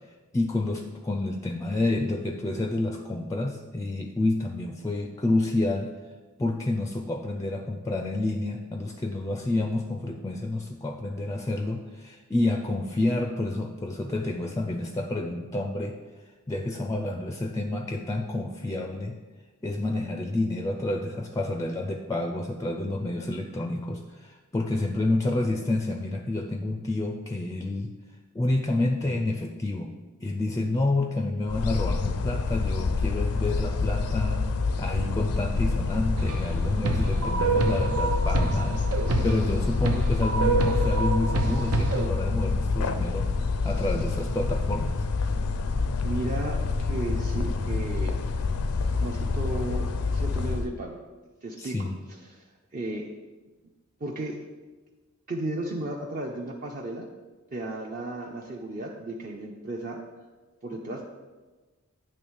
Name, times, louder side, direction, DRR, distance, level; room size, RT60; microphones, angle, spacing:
voice 1, 0.3-5.9 6.4-16.0 16.5-19.2 19.6-27.9 28.3-29.9 30.2-34.5 34.8-38.8 39.2-43.3 43.6-45.0 51.6-52.0, left 2 dB, 15° left, 4 dB, 0.4 m, -29 dB
sound 1, 31.5-50.7, left 4 dB, 80° left, 0.5 m, -27 dB
sound 2, 36.2-36.6 36.8-42.1, right 3 dB, 90° right, 0.8 m, -27 dB
voice 2, 46.0-48.2 49.0-51.0 51.4-51.9 52.2-52.5 52.7-53.1 54.0-54.4 55.3-57.1 57.5-60.0 60.6-61.1, right 2 dB, 40° right, 0 dB, 0.6 m, -34 dB
8.6 x 3.1 x 6.2 m, 1.3 s
head